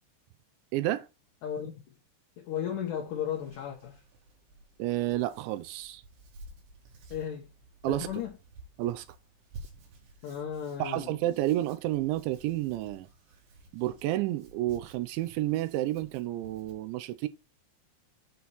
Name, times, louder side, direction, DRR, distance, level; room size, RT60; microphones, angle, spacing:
voice 1, 0.7-1.1 4.8-6.0 7.8-8.1 8.8-9.1 10.8-13.1 13.7-17.3, right 15 dB, 85° right, 3.0 m, -30 dB
voice 2, 1.4-1.8 2.4-4.0 7.1-7.5 7.9-8.3 10.2-11.2, left 9 dB, 75° left, 1.9 m, -35 dB
Hands, 2.7-16.7, right 2 dB, 65° right, 4.1 m, -53 dB
8.4 x 4.2 x 4.2 m
omnidirectional pair, 5.3 m